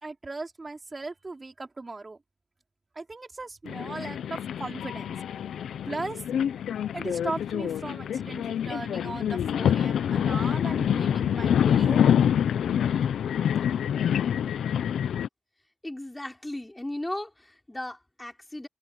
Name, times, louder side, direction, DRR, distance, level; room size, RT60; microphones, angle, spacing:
voice 1, 0.0-2.2 2.9-5.1 5.8-6.2 6.9-12.0, right 3 dB, 35° right, 3.3 m, -37 dB
sound 1, 3.7-15.3, left 9 dB, 85° left, 0.6 m, -26 dB
voice 2, 15.8-18.7, left 1 dB, 15° left, 4.3 m, -36 dB
cardioid pair, 65°, 0 cm